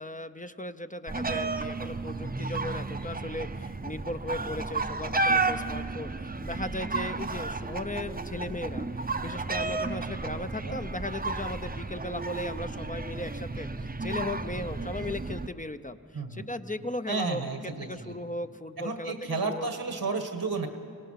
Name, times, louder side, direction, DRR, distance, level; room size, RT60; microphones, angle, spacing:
voice 1, 0.0-17.4 17.8-19.7, left 1 dB, 20° left, 9 dB, 0.6 m, -37 dB
sound 1, 1.1-15.5, right 3 dB, 25° right, 0.7 m, -32 dB
voice 2, 16.1-16.5 17.1-18.2 18.8-20.7, right 4 dB, 85° right, 6 dB, 1.8 m, -32 dB
24.5 x 18.0 x 5.8 m, 2.5 s
wide cardioid pair, 50°, 36 cm